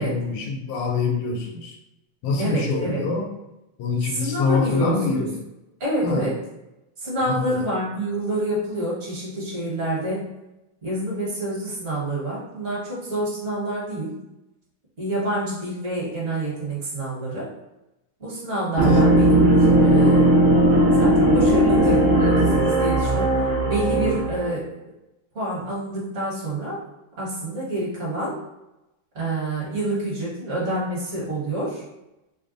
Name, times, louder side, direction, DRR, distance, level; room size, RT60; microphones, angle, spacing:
voice 1, 0.0-1.8 2.2-3.3 3.8-5.3 6.0-6.2 7.2-7.6 18.9-19.1, left 4 dB, 85° left, 2 dB, 1.5 m, -25 dB
voice 2, 2.4-3.1 4.1-5.3 5.8-6.4 7.0-10.3 10.8-14.1 15.0-17.5 18.2-20.3 21.0-23.4 23.7-24.7 25.3-26.8 27.2-28.4 29.1-31.8, right 1 dB, 40° right, -6 dB, 1.3 m, -27 dB
sound 1, 18.8-24.5, right 1 dB, 85° right, 0.5 m, -17 dB
3.4 x 2.2 x 3.8 m, 0.95 s
omnidirectional pair, 2.4 m